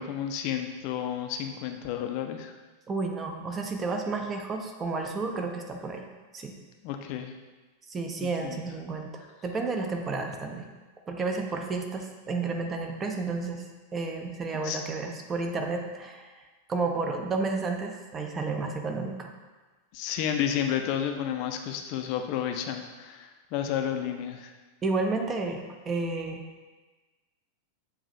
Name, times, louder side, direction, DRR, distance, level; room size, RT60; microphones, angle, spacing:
voice 1, 0.0-2.5 6.8-7.3 8.2-8.6 14.6-14.8 19.9-24.5, left 9 dB, 45° left, 5 dB, 0.4 m, -31 dB
voice 2, 2.9-6.1 6.3-6.6 7.9-10.7 11.1-13.6 13.9-16.3 16.7-19.3 24.8-26.5, right 3 dB, 20° right, 3 dB, 0.5 m, -31 dB
6.7 x 2.6 x 2.6 m, 1.3 s
figure-of-eight pair, 90°, 0 cm